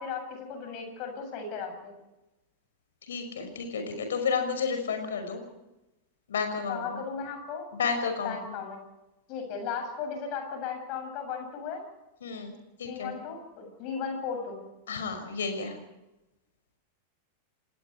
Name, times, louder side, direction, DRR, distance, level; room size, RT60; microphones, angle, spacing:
voice 1, 0.0-1.9 6.7-7.6 8.2-8.8 9.3-11.8 12.9-14.7, left 6 dB, 40° left, 5 dB, 7.5 m, -36 dB
voice 2, 3.0-5.4 6.3-7.0 7.7-8.6 12.2-12.5 12.8-13.2 14.9-15.8, left 5 dB, 65° left, 7 dB, 5.9 m, -31 dB
29.5 x 19.0 x 4.7 m, 0.97 s
figure-of-eight pair, 90°, 0 cm